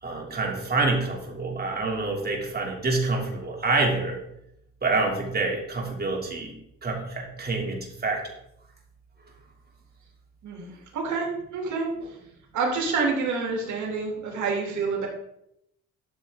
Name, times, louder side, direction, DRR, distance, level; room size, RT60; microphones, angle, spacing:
voice 1, 0.0-4.2 4.8-6.5 6.8-8.3, right 3 dB, 30° right, 0 dB, 3.0 m, -27 dB
voice 2, 10.4-12.2 12.5-15.1, right 4 dB, 75° right, 0 dB, 2.8 m, -28 dB
12.5 x 7.4 x 3.7 m, 0.79 s
cardioid pair, 90°, 30 cm